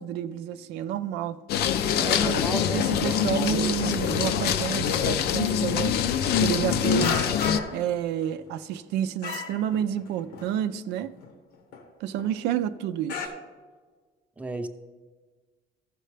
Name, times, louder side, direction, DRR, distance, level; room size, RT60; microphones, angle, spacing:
voice 1, 0.0-1.4 1.7-1.8 2.1-2.4 2.7-5.9 6.4-7.3 7.7-11.2 12.0-13.3, right 10 dB, 85° right, 0.4 m, -30 dB
sound 1, 1.5-7.6, left 8 dB, 70° left, 0.5 m, -24 dB
voice 2, 2.0-2.8 14.4-14.7, right 2 dB, 10° right, 0.7 m, -33 dB
sound 2, 4.8-5.1 5.6-5.7 6.2-6.6 7.0-7.9 8.2-8.9 9.2-10.1 10.3-10.6 10.9-11.0 11.2-11.9 12.2-12.3 12.6-12.7 13.1-13.3, left 5 dB, 90° left, 1.2 m, -34 dB
14.5 x 6.5 x 3.3 m
cardioid pair, 110°, 17 cm